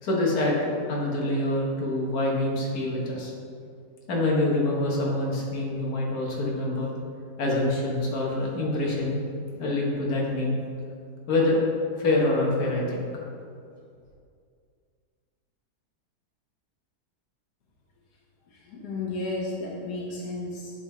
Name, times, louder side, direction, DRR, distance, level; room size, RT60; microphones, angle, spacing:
voice 1, 0.0-3.3 4.1-6.9 7.4-10.6 11.3-11.6 12.0-13.1, left 2 dB, 75° left, -3 dB, 1.6 m, -26 dB
voice 2, 18.5-20.7, left 2 dB, 90° left, -3 dB, 1.5 m, -33 dB
8.4 x 3.7 x 4.2 m, 2.3 s
omnidirectional pair, 1.7 m